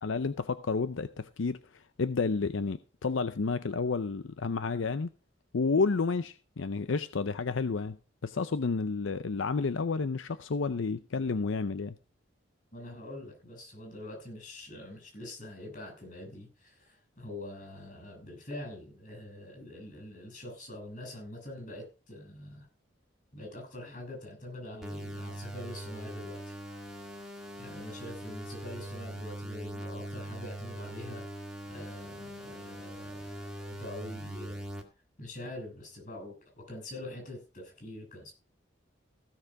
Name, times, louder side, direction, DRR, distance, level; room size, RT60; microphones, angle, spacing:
voice 1, 0.0-5.1 5.5-8.0 8.2-12.0, left 4 dB, 85° left, 0.6 m, -30 dB
voice 2, 12.7-22.7 23.3-26.5 27.6-31.2 31.7-34.6 35.2-38.3, left 1 dB, 40° left, 6.5 m, -44 dB
sound 1, 24.8-34.8, right 1 dB, 5° right, 1.8 m, -41 dB
16.0 x 6.7 x 4.8 m
head